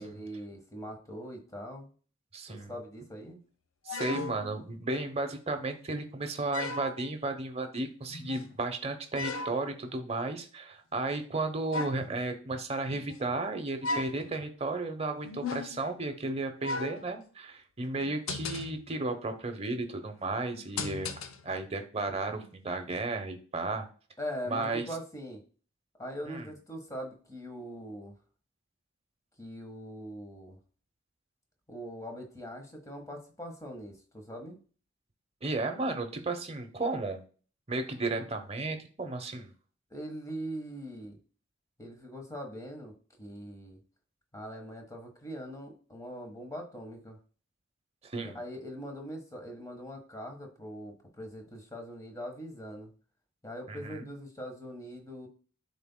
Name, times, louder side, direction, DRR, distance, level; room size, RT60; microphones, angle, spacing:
voice 1, 0.0-1.9 2.5-3.4 24.2-25.4 25.9-28.2 29.4-30.6 31.7-34.6 39.9-41.2 41.8-43.8 44.3-47.2 48.2-52.9 53.4-55.3, equal, 15° left, 3 dB, 1.4 m, -42 dB
voice 2, 2.3-2.7 3.8-21.1 21.4-23.9 24.5-24.9 26.2-26.5 35.4-37.2 37.7-39.5 48.0-48.4 53.7-54.1, right 2 dB, 30° right, 6 dB, 0.9 m, -34 dB
sound 1, 3.9-4.7 5.7-5.8 6.5-7.1 8.0-8.5 9.1-9.6 11.7-12.1 12.9-13.3 13.8-14.3 15.2-15.9 16.6-17.1 17.9-18.9 20.5-21.5 22.4-22.6, left 3 dB, 85° left, 0.6 m, -37 dB
11.0 x 4.0 x 2.2 m, 0.40 s
head